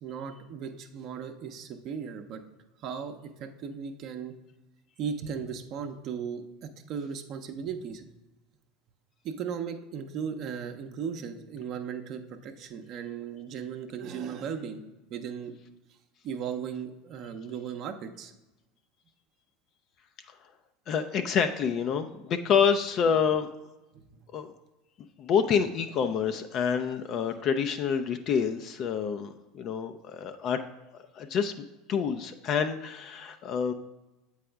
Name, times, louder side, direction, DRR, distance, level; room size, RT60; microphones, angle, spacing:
voice 1, 0.0-2.4 2.8-4.3 5.0-8.1 9.2-14.8 15.1-15.5 16.2-18.3 23.9-24.1, right 7 dB, 50° right, 5 dB, 0.6 m, -37 dB
voice 2, 20.9-23.5 24.3-24.5 25.2-30.6 31.2-33.7, left 7 dB, 50° left, 8 dB, 0.4 m, -27 dB
7.6 x 4.8 x 3.4 m, 1.0 s
hypercardioid pair, 80°, 0 cm